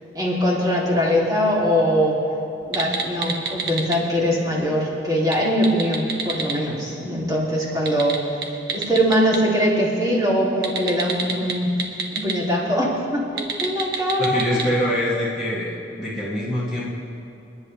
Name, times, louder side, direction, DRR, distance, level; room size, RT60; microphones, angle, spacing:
voice 1, 0.1-2.2 2.7-11.7 12.1-14.8, equal, 20° right, -5 dB, 2.9 m, -22 dB
sound 1, 2.6-4.0 5.2-6.6 7.7-9.4 10.6-12.3 13.3-14.7, right 5 dB, 55° right, 1.3 m, -28 dB
voice 2, 14.2-16.9, equal, 5° right, -11 dB, 2.4 m, -24 dB
28.5 x 10.5 x 3.3 m, 2.7 s
head